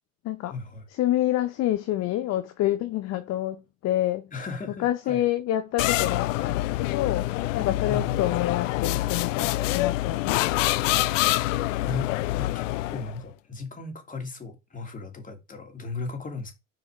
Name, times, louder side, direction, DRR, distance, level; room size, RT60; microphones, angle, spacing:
voice 1, 0.5-0.8 4.3-5.3 7.9-8.2 11.8-12.1 12.4-12.6 12.9-16.5, left 4 dB, 20° left, 2.7 m, -36 dB
voice 2, 1.0-4.2 4.8-10.9, left 13 dB, 40° left, 0.9 m, -28 dB
sound 1, 5.8-13.2, left 16 dB, 70° left, 0.6 m, -26 dB
6.9 x 4.8 x 4.8 m
hypercardioid pair, 90°, 39 cm